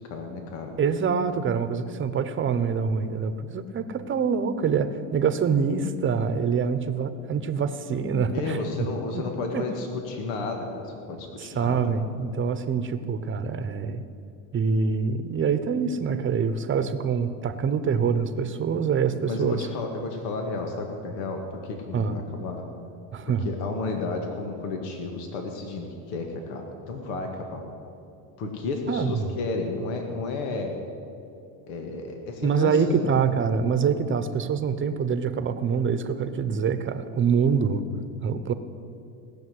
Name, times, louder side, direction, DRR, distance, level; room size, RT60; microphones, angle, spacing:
voice 1, 0.1-0.7 8.3-11.9 19.3-22.6 23.5-27.6 28.4-30.7 31.7-33.2, left 3 dB, 80° left, 3 dB, 2.0 m, -32 dB
voice 2, 0.8-8.9 9.1-9.2 9.5-9.7 11.4-14.0 14.5-19.7 21.9-22.2 23.1-23.5 28.9-29.3 32.4-37.8 38.2-38.5, right 6 dB, 30° right, 10 dB, 1.0 m, -25 dB
17.5 x 7.2 x 9.6 m, 2.7 s
supercardioid pair, 105°, 42 cm